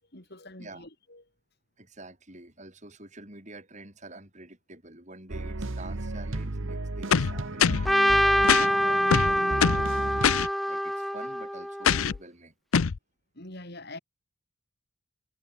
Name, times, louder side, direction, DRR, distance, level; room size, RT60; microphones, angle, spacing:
voice 1, 0.1-1.2 13.4-14.0, left 2 dB, 50° left, 4.7 m, -44 dB
voice 2, 1.8-10.3 10.7-12.5, right 2 dB, 35° right, 5.2 m, -47 dB
sound 1, 5.3-10.3, right 2 dB, 70° right, 1.2 m, -34 dB
sound 2, 7.1-7.9 8.5-8.7 9.1-9.9 10.2-10.5 11.8-12.2 12.7-13.0, left 7 dB, 85° left, 0.6 m, -23 dB
Trumpet, 7.9-12.0, equal, ahead, 0.6 m, -25 dB
head